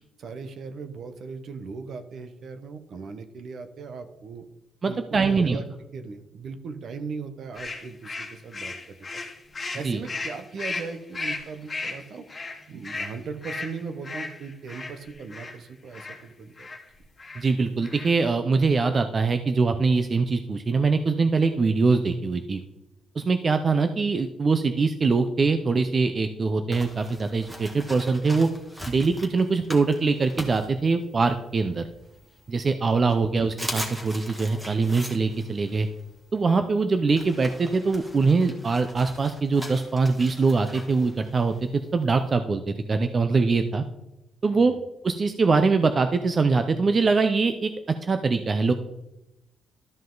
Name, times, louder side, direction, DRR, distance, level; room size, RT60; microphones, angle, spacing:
voice 1, 0.2-4.4 4.8-5.7 5.9-9.0 9.7-12.2 12.7-16.7 33.1-33.3 44.5-44.8, right 5 dB, 55° right, 8 dB, 0.9 m, -38 dB
voice 2, 4.8-5.6 9.8-10.0 17.4-22.6 23.2-28.5 28.9-31.9 32.5-35.9 36.3-43.8 44.4-44.7 45.0-47.7 48.0-48.7, right 4 dB, 30° right, 8 dB, 0.5 m, -23 dB
sound 1, 7.6-15.6 15.9-16.2 16.6-16.8 17.2-17.5 17.8-18.3, left 3 dB, 25° left, 1.7 m, -35 dB
sound 2, 26.7-31.3 31.8-32.7 33.1-33.2 33.5-42.3, equal, 5° right, 1.6 m, -41 dB
12.5 x 5.4 x 3.9 m, 0.91 s
cardioid pair, 135°, 0 cm